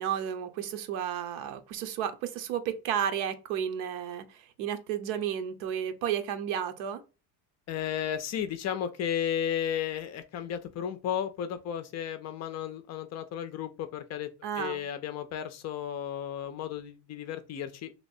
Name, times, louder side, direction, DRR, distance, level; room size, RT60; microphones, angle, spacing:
voice 1, 0.0-7.0 14.4-14.8, right 9 dB, 80° right, 0.8 m, -32 dB
voice 2, 7.7-14.3 14.6-17.9, left 9 dB, 40° left, 0.4 m, -34 dB
3.1 x 2.9 x 2.6 m
cardioid pair, 140°, 45 cm